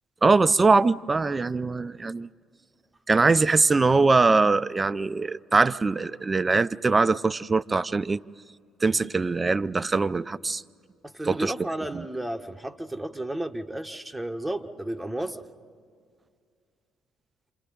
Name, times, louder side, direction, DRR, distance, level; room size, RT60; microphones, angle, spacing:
voice 1, 0.2-2.3 3.1-8.2 8.8-10.6 11.2-11.5 11.9-12.0, right 3 dB, 25° right, 16 dB, 0.5 m, -22 dB
voice 2, 11.0-15.4, right 1 dB, 5° right, 5 dB, 1.2 m, -33 dB
28.5 x 27.5 x 4.0 m, 2.2 s
figure-of-eight pair, 50°, 0 cm